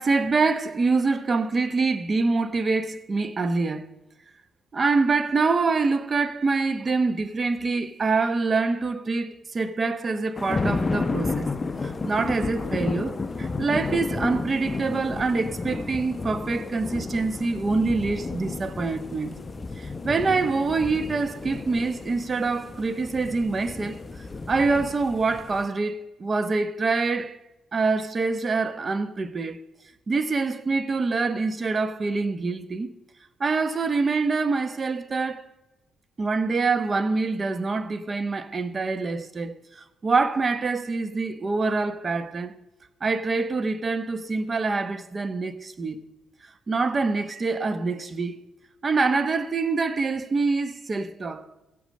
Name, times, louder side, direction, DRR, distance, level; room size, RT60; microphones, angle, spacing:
voice 1, 0.0-3.9 4.7-11.5 11.8-19.3 19.8-24.0 24.5-27.4 27.7-29.6 30.1-32.9 33.4-35.5 36.2-42.5 43.0-46.0 46.7-48.4 48.8-51.4, right 4 dB, 35° right, 0.9 m, -25 dB
sound 1, 10.4-25.7, left 3 dB, 25° left, 0.8 m, -32 dB
15.0 x 8.3 x 6.5 m
cardioid pair, 90°, 0 cm